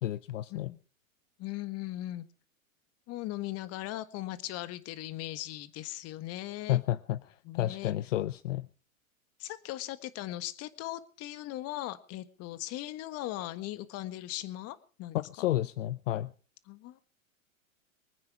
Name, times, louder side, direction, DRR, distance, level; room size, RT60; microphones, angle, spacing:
voice 1, 0.0-0.7 6.7-8.7 15.1-16.3, left 14 dB, 65° left, 16 dB, 0.8 m, -31 dB
voice 2, 1.4-2.2 3.1-6.8 7.4-7.9 9.4-15.5 16.7-17.0, left 15 dB, 35° left, 13 dB, 1.6 m, -39 dB
24.0 x 9.6 x 4.8 m, 0.40 s
hypercardioid pair, 110°, 41 cm